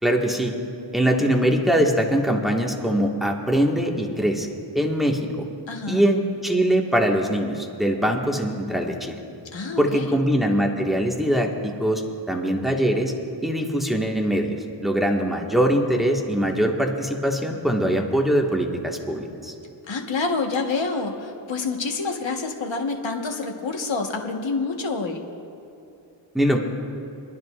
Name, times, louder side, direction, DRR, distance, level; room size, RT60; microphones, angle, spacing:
voice 1, 0.0-0.5 0.9-5.2 5.9-9.2 9.8-12.0 12.3-13.1 13.4-19.5 26.3-26.6, equal, ahead, 0 dB, 1.7 m, -22 dB
voice 2, 5.7-6.0 9.5-10.2 19.8-25.2, left 4 dB, 75° left, 2 dB, 1.4 m, -27 dB
29.5 x 10.5 x 2.5 m, 2.8 s
cardioid pair, 40°, 45 cm